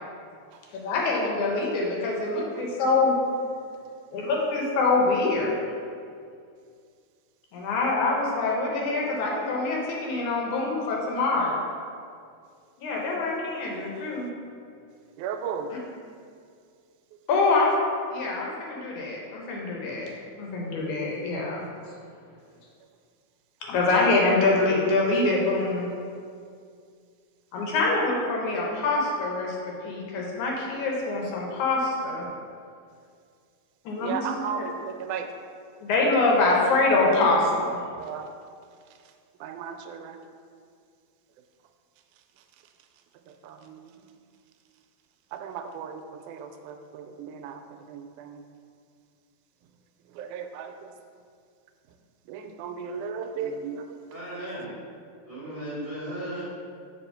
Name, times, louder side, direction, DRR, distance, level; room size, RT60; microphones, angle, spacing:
voice 1, 0.8-3.1 4.1-5.6 7.5-11.6 12.8-14.3 15.7-15.8 17.3-17.7 18.1-20.1 20.4-21.6 23.6-25.9 27.5-32.2 33.9-34.4 35.8-37.8, left 3 dB, 80° left, -2 dB, 2.6 m, -25 dB
voice 2, 15.2-15.7 34.0-35.3 38.0-38.3 39.4-40.2 43.3-43.9 45.3-47.6 47.9-48.4 50.1-50.9 52.3-54.0, right 7 dB, 90° right, 6 dB, 2.0 m, -35 dB
voice 3, 54.1-54.7 55.3-56.4, right 1 dB, 35° right, -10 dB, 0.9 m, -36 dB
6.1 x 4.2 x 5.6 m, 2.2 s
omnidirectional pair, 3.4 m